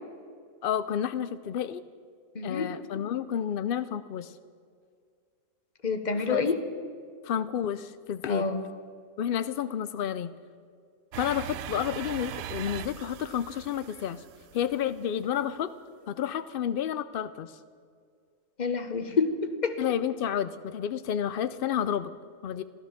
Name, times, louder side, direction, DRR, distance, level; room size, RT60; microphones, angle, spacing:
voice 1, 0.6-1.8 2.4-4.3 6.2-6.4 7.2-8.5 9.2-10.3 11.2-14.2 14.5-15.7 16.1-17.5 19.8-22.1 22.4-22.6, left 9 dB, 80° left, 13 dB, 0.5 m, -30 dB
voice 2, 2.3-2.7 5.8-6.6 8.3-8.6 18.6-19.8, left 4 dB, 35° left, 8 dB, 1.1 m, -28 dB
sound 1, 11.1-15.0, right 10 dB, 80° right, 1.1 m, -40 dB
16.0 x 12.5 x 7.2 m, 2.2 s
omnidirectional pair, 1.5 m